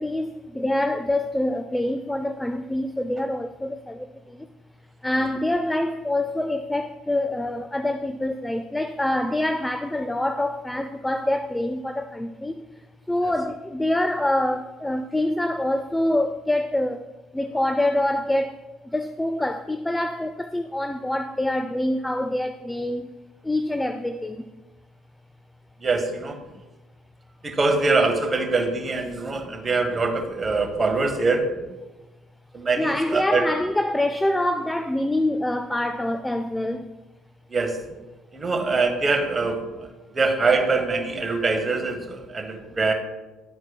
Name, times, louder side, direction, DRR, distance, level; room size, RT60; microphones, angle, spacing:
voice 1, 0.0-4.5 5.0-12.6 13.1-17.1 17.3-23.1 23.4-24.5 29.3-29.5 32.8-36.9, left 1 dB, 10° left, 9 dB, 0.4 m, -25 dB
voice 2, 25.8-26.4 27.4-31.5 32.5-33.5 37.5-37.8 38.3-39.9 40.1-42.9, right 3 dB, 30° right, 4 dB, 1.0 m, -23 dB
11.5 x 4.2 x 2.3 m, 1.1 s
hypercardioid pair, 60°, 0 cm